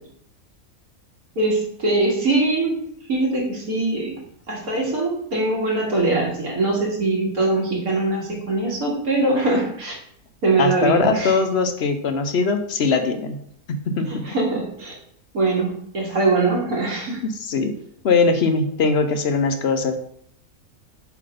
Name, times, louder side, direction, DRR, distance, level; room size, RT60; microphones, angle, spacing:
voice 1, 1.4-2.8 3.1-4.1 4.5-10.0 10.4-11.4 14.1-14.9 15.3-17.2, right 2 dB, 80° right, -3 dB, 2.5 m, -22 dB
voice 2, 10.6-13.4 13.9-14.3 17.2-17.8 18.0-20.0, left 4 dB, 55° left, 7 dB, 0.9 m, -21 dB
7.5 x 3.9 x 5.1 m, 0.67 s
omnidirectional pair, 1.5 m